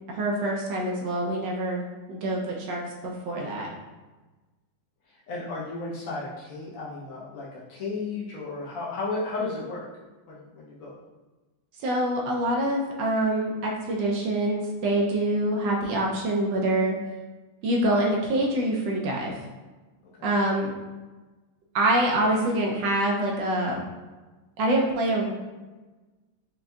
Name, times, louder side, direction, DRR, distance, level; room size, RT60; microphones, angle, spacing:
voice 1, 0.1-3.7 11.8-17.0 17.6-19.3 20.2-20.7 21.7-23.8 24.6-25.3, right 1 dB, 70° right, -1 dB, 1.2 m, -25 dB
voice 2, 5.1-9.9 10.3-11.0 20.2-20.3, left 3 dB, 75° left, -6 dB, 0.7 m, -34 dB
6.0 x 2.6 x 2.2 m, 1.2 s
omnidirectional pair, 2.4 m